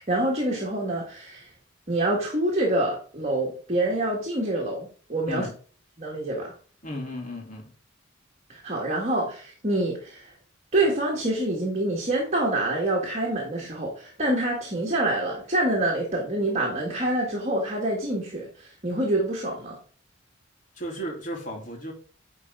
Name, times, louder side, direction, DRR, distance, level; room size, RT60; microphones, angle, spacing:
voice 1, 0.0-1.5 1.9-5.5 6.0-6.5 8.5-10.3 10.7-19.8, right 1 dB, 35° right, -1 dB, 1.9 m, -26 dB
voice 2, 5.3-5.6 6.8-7.7 20.7-21.9, equal, 40° left, -1 dB, 3.0 m, -34 dB
10.0 x 4.4 x 3.7 m, 0.40 s
head